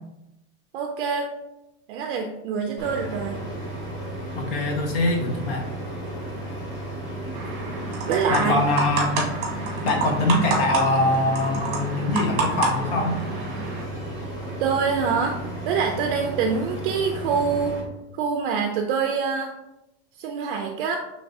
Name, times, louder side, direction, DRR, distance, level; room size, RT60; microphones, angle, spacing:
voice 1, 0.7-1.3 1.9-3.4 8.1-8.6 14.6-15.4 15.7-17.8 18.1-19.5 20.2-21.0, right 5 dB, 50° right, 3 dB, 0.4 m, -25 dB
sound 1, 2.8-17.8, right 1 dB, 10° left, 0.9 m, -34 dB
voice 2, 4.3-5.7 8.3-9.3 9.8-13.2, left 2 dB, 55° left, 2 dB, 1.0 m, -23 dB
sound 2, 7.3-13.8, right 4 dB, 25° right, 1.0 m, -29 dB
5.8 x 3.2 x 2.6 m, 0.95 s
supercardioid pair, 170°, 35 cm